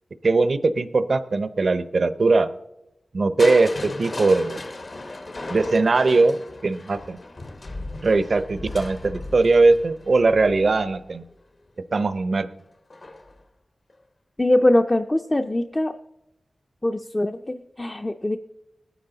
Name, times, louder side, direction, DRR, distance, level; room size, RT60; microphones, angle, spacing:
voice 1, 0.2-2.5 3.1-4.6 5.5-7.2 8.0-11.3 11.9-12.5, right 3 dB, 60° right, 12 dB, 0.6 m, -20 dB
Crushing, 3.4-11.3 12.9-13.4 13.9-14.0, left 2 dB, 55° left, 1.1 m, -36 dB
voice 2, 14.4-15.9 16.8-18.4, left 1 dB, 20° left, 6 dB, 0.5 m, -22 dB
19.0 x 9.9 x 3.9 m, 0.90 s
wide cardioid pair, 80°, 0 cm